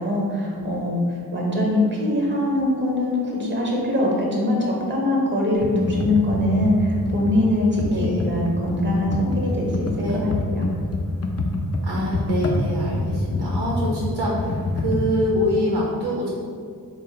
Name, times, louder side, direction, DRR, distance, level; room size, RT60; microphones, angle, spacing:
voice 1, 0.0-10.6, left 1 dB, 30° right, -2 dB, 1.0 m, -22 dB
Computer keyboard, 5.6-15.1, left 2 dB, 40° left, 0.5 m, -26 dB
voice 2, 7.9-8.2 10.0-10.2 11.8-16.3, equal, 80° right, -4 dB, 0.6 m, -25 dB
3.7 x 2.1 x 4.0 m, 2.2 s
cardioid pair, 45°, 38 cm